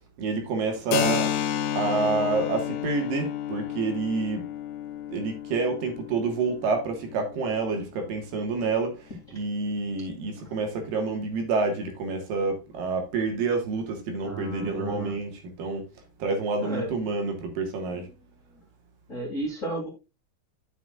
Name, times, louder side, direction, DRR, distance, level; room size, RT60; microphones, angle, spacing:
voice 1, 0.2-1.3 1.8-4.5 5.1-15.9 16.2-18.1, right 4 dB, 70° right, 3.0 m, -28 dB
Keyboard (musical), 0.9-8.3, left 10 dB, 75° left, 1.7 m, -31 dB
voice 2, 14.2-15.1 16.6-16.9 19.1-19.9, right 1 dB, 25° left, 2.1 m, -32 dB
9.8 x 7.1 x 2.4 m
omnidirectional pair, 4.3 m